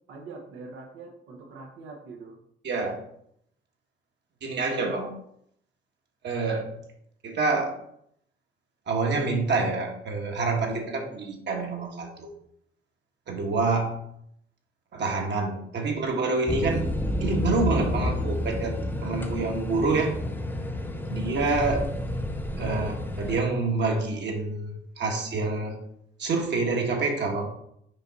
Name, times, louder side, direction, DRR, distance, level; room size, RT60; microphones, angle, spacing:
voice 1, 0.1-2.4 22.6-22.8, right 3 dB, 90° right, 2 dB, 1.1 m, -43 dB
voice 2, 2.6-3.0 4.4-5.1 6.2-6.7 7.2-7.7 8.9-12.3 13.3-14.0 14.9-16.9 17.2-18.8 19.0-20.2 21.1-21.9 22.6-22.9 23.2-25.8 26.2-27.5, right 3 dB, 60° right, 1 dB, 1.5 m, -27 dB
sound 1, 16.5-23.4, left 1 dB, 10° left, 0.9 m, -30 dB
5.5 x 4.8 x 4.0 m, 0.73 s
cardioid pair, 90°, 20 cm